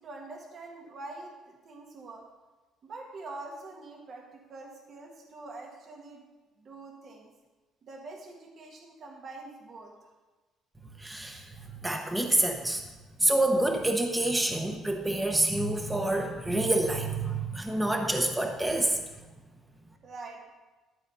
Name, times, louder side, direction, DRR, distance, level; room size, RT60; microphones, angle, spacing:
voice 1, 0.0-2.2 2.8-6.2 6.6-7.3 7.8-10.1 20.0-20.4, right 2 dB, 45° right, 0 dB, 1.4 m, -45 dB
voice 2, 11.0-12.8 13.2-19.0, right 1 dB, 10° right, 3 dB, 1.0 m, -27 dB
12.0 x 4.1 x 6.7 m, 1.2 s
cardioid pair, 125°, 0 cm